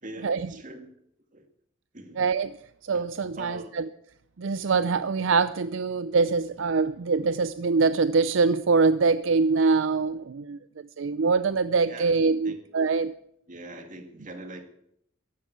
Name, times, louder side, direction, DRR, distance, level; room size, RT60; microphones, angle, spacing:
voice 1, 0.0-0.9 1.3-1.5 1.9-2.2 2.9-3.1 3.3-3.7 11.8-12.6 13.5-14.7, right 1 dB, 40° right, 7 dB, 2.1 m, -42 dB
voice 2, 2.2-2.5 2.8-3.8 4.4-10.6 11.0-13.1, right 4 dB, 65° right, 15 dB, 0.5 m, -24 dB
14.5 x 11.0 x 8.1 m, 0.73 s
head